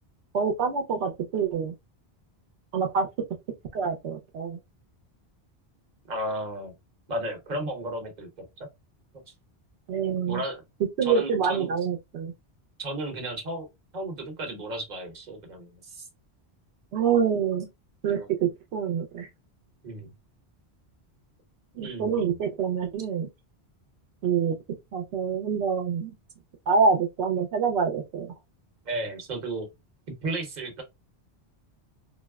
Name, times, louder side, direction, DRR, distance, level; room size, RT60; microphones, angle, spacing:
voice 1, 0.3-1.7 2.7-3.1 3.7-4.6 9.9-10.4 11.0-12.3 16.9-17.7 18.0-19.3 21.7-23.3 24.2-24.6 24.9-26.1 26.7-28.3, right 6 dB, 85° right, 0.9 m, -26 dB
voice 2, 6.1-6.7 7.1-8.3 10.3-10.6 11.0-11.7 12.8-13.7 13.9-16.1 18.1-18.3 19.8-20.1 21.8-22.4 28.9-29.7 30.2-30.8, right 1 dB, 45° right, 1.0 m, -33 dB
4.0 x 2.0 x 2.2 m
omnidirectional pair, 1.1 m